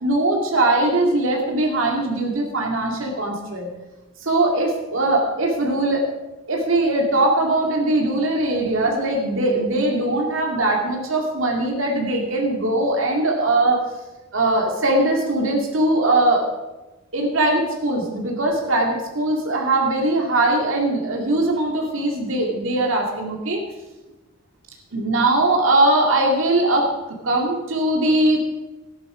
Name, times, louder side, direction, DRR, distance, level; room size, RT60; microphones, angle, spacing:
voice 1, 0.0-3.7 4.2-6.1 6.5-13.8 14.3-16.4 17.1-23.6 24.9-28.4, right 2 dB, 80° right, 0 dB, 2.4 m, -20 dB
14.5 x 10.5 x 5.1 m, 1.1 s
head